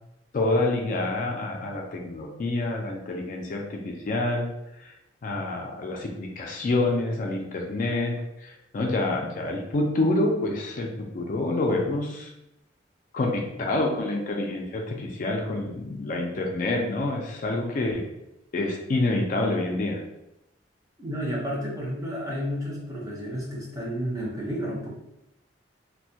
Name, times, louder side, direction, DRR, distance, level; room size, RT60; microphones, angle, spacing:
voice 1, 0.3-4.5 4.8-4.9 5.2-8.1 8.4-10.9 11.1-12.3 13.1-18.0 18.5-20.0, left 2 dB, 45° left, 1 dB, 0.4 m, -27 dB
voice 2, 21.0-24.9, equal, 20° right, -4 dB, 0.6 m, -31 dB
2.2 x 2.1 x 2.7 m, 0.86 s
head